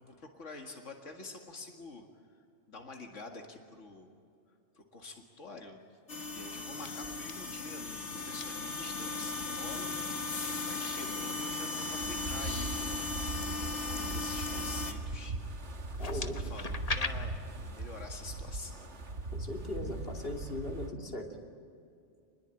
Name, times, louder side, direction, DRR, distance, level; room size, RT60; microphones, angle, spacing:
voice 1, 0.0-2.1 2.3-4.1 4.7-5.8 6.3-10.1 10.6-15.5 16.1-17.3 17.6-18.9, left 3 dB, 90° left, 3 dB, 2.4 m, -47 dB
sound 1, 5.9-6.4 6.8-7.3 8.2-8.4 9.3-9.6 10.4-10.9 11.4-11.9 12.5-15.1 15.8-17.1, left 3 dB, 35° left, 1.2 m, -41 dB
sound 2, 6.1-14.9, left 3 dB, 70° left, 1.9 m, -37 dB
Wind, 11.8-20.9, right 2 dB, 70° right, 2.0 m, -40 dB
voice 2, 16.0-16.4 19.3-21.3, left 1 dB, 50° left, 1 dB, 3.1 m, -38 dB
27.5 x 21.0 x 9.1 m, 2.5 s
omnidirectional pair, 1.2 m